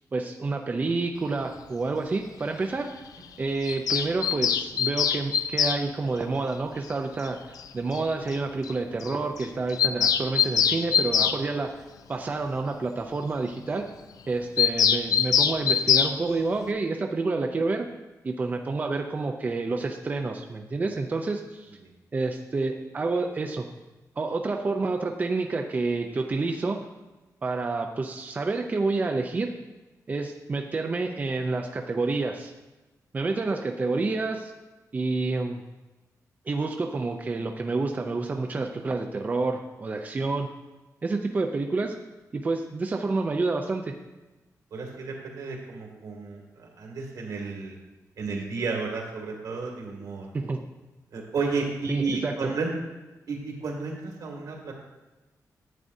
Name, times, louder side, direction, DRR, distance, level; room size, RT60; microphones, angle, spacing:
voice 1, 0.1-2.9 3.4-11.7 12.1-13.9 14.3-17.9 18.2-21.7 22.1-23.7 24.2-26.8 27.4-29.5 30.1-32.5 33.1-34.5 34.9-35.6 36.5-40.5 41.0-41.9 42.3-43.9 50.3-50.6 51.9-52.3, right 3 dB, 25° right, 3 dB, 0.5 m, -28 dB
Bird vocalization bird call bird song, 3.6-5.8 7.2-7.3 7.6-7.7 7.9-8.0 8.3-8.4 8.6-8.7 9.0-9.1 9.4-11.4 14.6-16.1, left 8 dB, 75° left, 0.4 m, -23 dB
voice 2, 44.7-47.8 48.2-50.3 51.1-52.7 53.3-54.7, right 4 dB, 80° right, -1 dB, 2.1 m, -32 dB
10.5 x 8.2 x 2.7 m, 1.1 s
wide cardioid pair, 170°, 6 cm